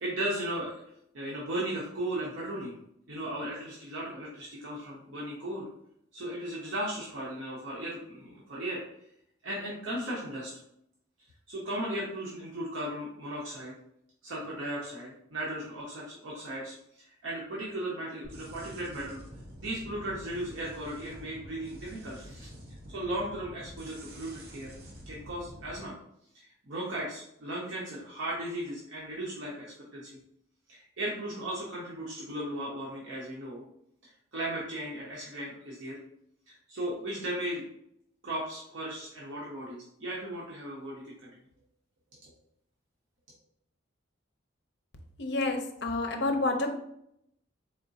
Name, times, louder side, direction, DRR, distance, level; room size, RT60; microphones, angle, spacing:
voice 1, 0.0-0.8 1.1-2.8 3.1-5.7 6.1-8.8 9.4-10.5 11.5-13.8 14.2-19.2 19.6-22.5 22.9-24.7 25.1-25.9 26.3-30.2 30.7-33.6 34.3-36.0 36.5-37.6 38.2-41.1 42.2-42.3, right 1 dB, 80° right, -5 dB, 0.9 m, -36 dB
sound 1, 18.2-25.9, equal, 50° right, 0.8 m, -47 dB
voice 2, 45.2-46.7, left 2 dB, 60° left, 6 dB, 0.5 m, -29 dB
3.8 x 3.6 x 2.7 m, 0.75 s
head